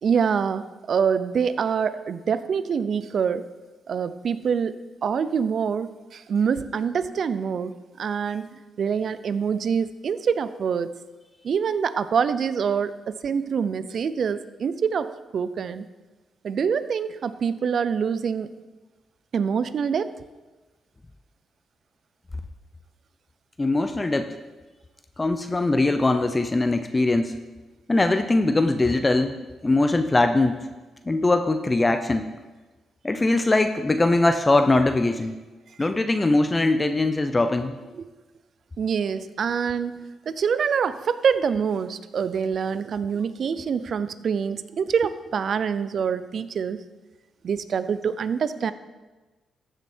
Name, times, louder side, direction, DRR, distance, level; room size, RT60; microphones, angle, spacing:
voice 1, 0.0-3.5 3.9-4.7 5.0-10.9 11.4-15.9 16.4-18.5 19.3-20.1 38.0-38.1 38.8-46.8 47.4-48.7, right 6 dB, 60° right, 14 dB, 0.5 m, -25 dB
voice 2, 23.6-24.4 25.2-27.3 27.9-29.4 29.6-30.6 31.1-32.3 33.0-35.3 35.8-37.8, left 2 dB, 20° left, 8 dB, 0.6 m, -21 dB
14.5 x 6.5 x 4.4 m, 1.2 s
cardioid pair, 85°, 0 cm